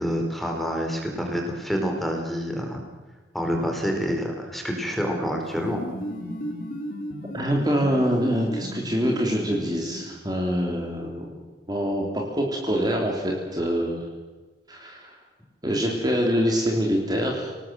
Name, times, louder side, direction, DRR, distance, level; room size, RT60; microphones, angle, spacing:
voice 1, 0.0-2.8 3.3-5.8, equal, ahead, 2 dB, 4.3 m, -27 dB
sound 1, 5.4-10.3, equal, 50° left, 3.7 m, -35 dB
voice 2, 7.3-11.2 11.7-14.1 14.7-15.1 15.6-17.5, equal, 20° right, 0 dB, 3.3 m, -25 dB
26.5 x 19.0 x 7.7 m, 1.3 s
head